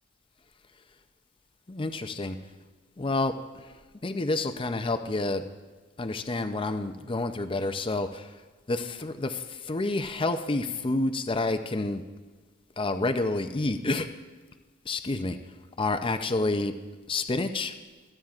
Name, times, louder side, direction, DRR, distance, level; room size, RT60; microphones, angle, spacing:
voice 1, 1.7-2.4 3.0-3.7 4.0-5.4 6.0-8.3 8.7-12.0 12.8-14.1 14.9-15.4 15.8-16.7 17.1-17.7, left 2 dB, 25° left, 8 dB, 0.5 m, -29 dB
26.0 x 8.9 x 2.4 m, 1.3 s
head